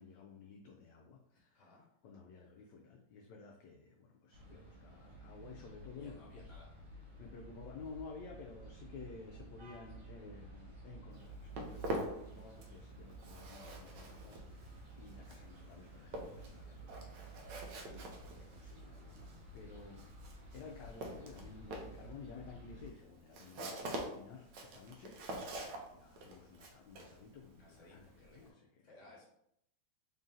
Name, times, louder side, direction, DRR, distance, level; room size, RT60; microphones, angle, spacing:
voice 1, 0.0-1.7 2.0-6.4 7.2-17.6 17.8-28.9, left 4 dB, 75° left, 0 dB, 1.1 m, -54 dB
voice 2, 1.3-1.9 5.9-6.7 27.5-29.3, left 2 dB, 45° left, -2 dB, 1.5 m, -61 dB
sound 1, 4.3-22.9, right 2 dB, 55° right, 2.0 m, -53 dB
Walk footsteps, 11.1-12.8 13.1-28.5, right 1 dB, 70° right, 1.3 m, -45 dB
3.7 x 2.7 x 3.7 m, 0.75 s
omnidirectional pair, 2.1 m